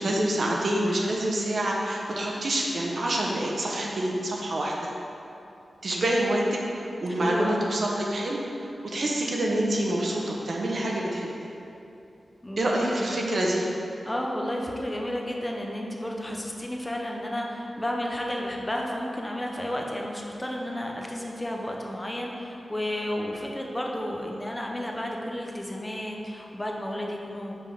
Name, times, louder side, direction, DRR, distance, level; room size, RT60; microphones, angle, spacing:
voice 1, 0.0-4.7 5.8-6.6 7.0-8.4 8.8-11.3 12.6-13.7, right 1 dB, 55° right, -2 dB, 0.8 m, -26 dB
voice 2, 0.9-1.3 2.1-2.4 7.2-7.6 12.4-13.0 14.1-27.5, left 1 dB, 15° left, -1 dB, 0.6 m, -32 dB
5.4 x 3.4 x 5.6 m, 2.7 s
wide cardioid pair, 150°, 0 cm